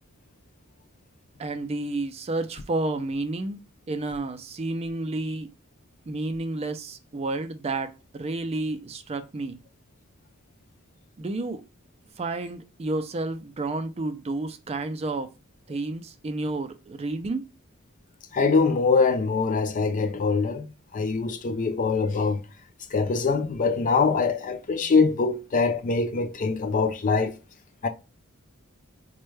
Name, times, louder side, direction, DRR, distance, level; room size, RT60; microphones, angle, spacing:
voice 1, 1.4-3.6 3.9-5.5 6.1-9.6 11.2-11.6 12.2-15.3 15.7-17.5, right 2 dB, 30° right, 0.4 m, -30 dB
voice 2, 18.3-20.7 20.9-22.4 22.9-27.4 27.8-27.9, left 4 dB, 35° left, 0.4 m, -23 dB
4.2 x 2.2 x 3.1 m
head